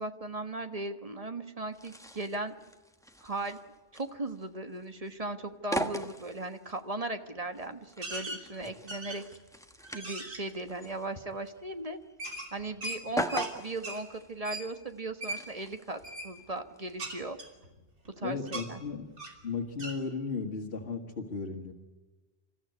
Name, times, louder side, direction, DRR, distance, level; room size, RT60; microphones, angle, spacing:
voice 1, 0.0-2.5 3.2-3.6 3.9-9.2 9.9-12.0 12.5-17.4 18.2-18.8, right 2 dB, 35° right, 8 dB, 1.3 m, -37 dB
sound 1, 1.7-17.2, equal, 5° left, 1.2 m, -41 dB
sound 2, 8.0-8.4 8.9-9.4 9.8-10.4 12.2-13.5 13.8-14.0 14.4-14.7 15.2-15.4 16.0-16.3 17.0-18.1 18.5-18.7 19.2-19.4 19.8-20.0, right 1 dB, 85° right, 3.3 m, -39 dB
voice 2, 18.2-19.1 19.4-21.7, left 4 dB, 60° left, 0 dB, 1.9 m, -35 dB
27.5 x 14.5 x 9.5 m, 1.3 s
omnidirectional pair, 1.1 m